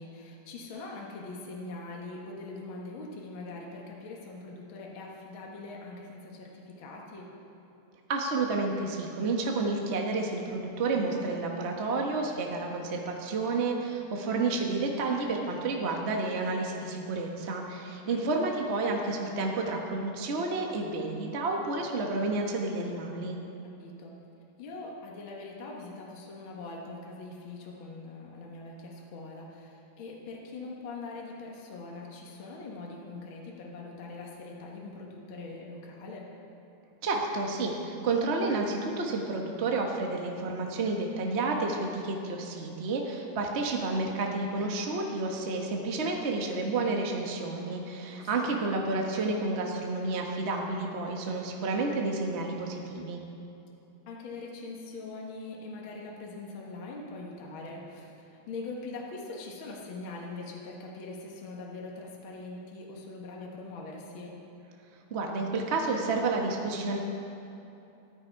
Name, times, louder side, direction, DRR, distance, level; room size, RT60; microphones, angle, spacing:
voice 1, 0.0-7.3 17.9-18.2 23.8-24.1 24.6-36.3 48.1-48.5 54.1-64.4, left 3 dB, 50° left, -2 dB, 1.9 m, -42 dB
voice 2, 8.1-23.4 37.0-53.2 65.1-67.0, right 3 dB, 80° right, 1 dB, 0.6 m, -30 dB
14.5 x 13.0 x 4.7 m, 2.9 s
omnidirectional pair, 3.6 m